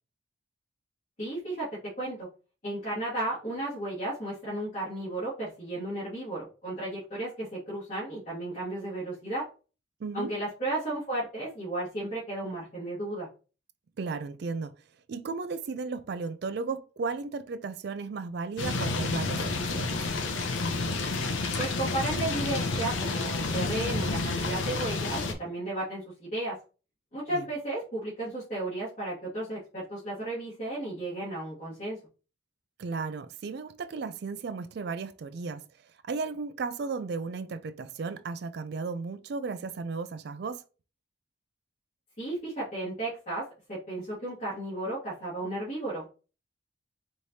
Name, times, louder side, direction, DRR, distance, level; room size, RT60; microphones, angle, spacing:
voice 1, 1.2-1.7 2.0-2.3 2.6-9.4 10.1-13.3 21.6-26.6 27.1-32.0 42.2-46.1, right 2 dB, 40° left, 2.1 m, -34 dB
voice 2, 10.0-10.3 14.0-14.7 15.1-20.0 27.3-27.4 32.8-35.6 36.0-40.6, right 4 dB, 50° right, 0.3 m, -35 dB
sound 1, 18.6-25.3, left 3 dB, 70° left, 0.7 m, -30 dB
4.9 x 3.1 x 2.7 m
head